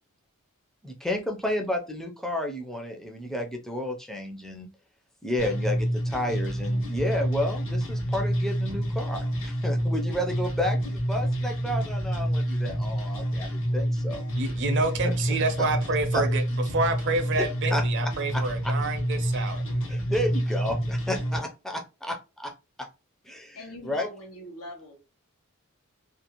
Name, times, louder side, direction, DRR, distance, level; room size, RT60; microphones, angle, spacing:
voice 1, 0.8-4.7 5.2-14.2 15.0-15.1 16.1-16.3 17.7-18.4 19.9-22.5 22.8-22.9 23.2-23.6 23.8-24.1, left 1 dB, ahead, 0.4 m, -31 dB
sound 1, 5.4-21.4, equal, 60° left, 0.8 m, -28 dB
voice 2, 14.4-16.4 16.7-19.8, right 3 dB, 55° right, 0.5 m, -28 dB
voice 3, 23.5-25.0, equal, 85° left, 0.9 m, -41 dB
2.5 x 2.4 x 2.9 m
head